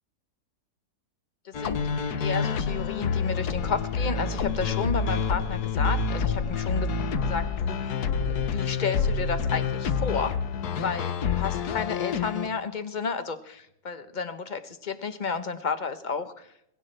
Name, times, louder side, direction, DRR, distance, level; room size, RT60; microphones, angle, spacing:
voice 1, 1.4-1.8 2.2-6.9 7.2-8.0 8.3-10.3 10.8-16.5, left 5 dB, 35° left, 10 dB, 0.8 m, -32 dB
sound 1, 1.5-12.5, left 5 dB, 70° left, 1.5 m, -28 dB
21.0 x 17.0 x 3.3 m, 0.77 s
omnidirectional pair, 1.8 m